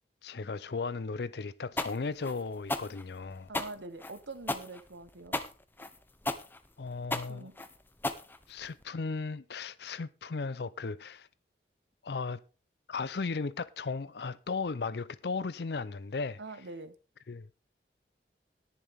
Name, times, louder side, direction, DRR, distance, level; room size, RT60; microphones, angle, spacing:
voice 1, 0.2-3.5 6.8-7.5 8.5-11.3 12.0-12.4 12.9-16.4 17.3-17.5, left 4 dB, 65° left, 0.5 m, -36 dB
sound 1, 1.8-8.8, left 2 dB, 10° left, 0.7 m, -35 dB
voice 2, 3.5-5.4 7.2-7.6 16.4-16.9, right 3 dB, 80° right, 1.0 m, -44 dB
20.0 x 7.1 x 3.5 m
head